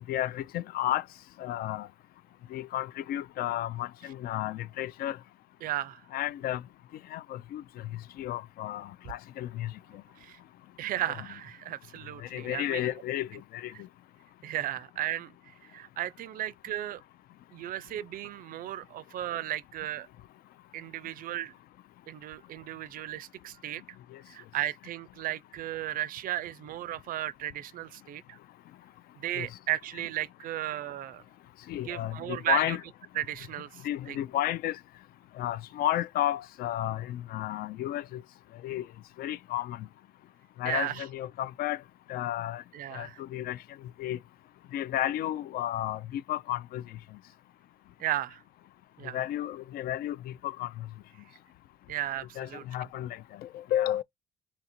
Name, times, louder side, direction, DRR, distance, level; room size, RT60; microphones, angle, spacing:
voice 1, 0.1-1.0 1.4-1.9 2.5-5.2 6.1-6.6 7.1-7.6 8.2-9.7 12.2-13.7 29.4-29.5 31.7-32.8 33.8-34.8 35.4-38.2 38.6-38.9 39.2-39.9 40.6-41.8 42.1-42.6 42.9-43.6 44.0-44.2 44.7-46.8 49.1-50.7 52.4-54.0, left 13 dB, 65° left, 0.4 m, -32 dB
voice 2, 5.6-6.0 10.2-10.4 10.8-12.9 14.4-15.3 15.6-17.0 17.5-20.1 20.7-21.5 22.1-23.8 24.3-28.4 29.2-31.2 31.8-32.8 33.2-34.2 40.7-41.0 42.7-43.2 48.0-48.4 49.0-49.2 51.9-52.6, right 13 dB, 55° right, 0.4 m, -35 dB
2.8 x 2.6 x 4.3 m
cardioid pair, 110°, 17 cm